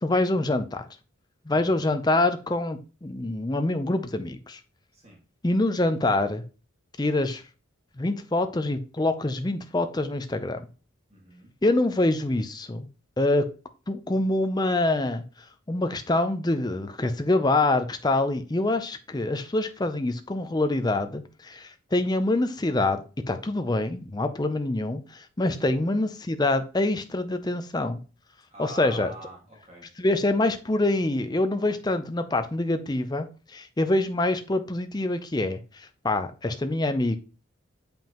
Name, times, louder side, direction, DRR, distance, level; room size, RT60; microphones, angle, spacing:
voice 1, 0.0-0.9 1.5-4.6 5.4-6.4 7.0-7.4 8.0-10.7 11.6-12.9 13.2-13.5 13.9-15.2 15.7-28.0 28.6-29.1 30.0-37.2, left 2 dB, 20° left, 8 dB, 0.5 m, -25 dB
voice 2, 1.5-1.9 4.9-5.2 11.1-11.5 25.6-25.7 28.5-29.9, right 1 dB, 30° right, -2 dB, 1.9 m, -44 dB
7.4 x 5.2 x 3.0 m, 0.34 s
head